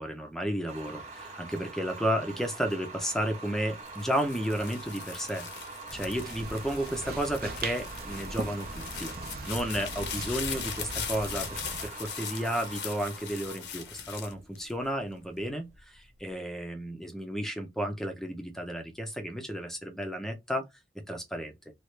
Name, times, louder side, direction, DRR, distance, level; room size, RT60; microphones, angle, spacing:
voice 1, 0.0-5.5 5.9-9.1 9.5-20.7 21.1-21.5, equal, ahead, 0.5 m, -33 dB
sound 1, 0.7-15.6, right 3 dB, 35° right, 0.9 m, -45 dB
sound 2, 3.9-15.2 15.8-16.3, left 8 dB, 65° left, 0.7 m, -40 dB
sound 3, 5.9-11.9, right 3 dB, 50° right, 0.6 m, -40 dB
3.1 x 2.3 x 3.1 m
head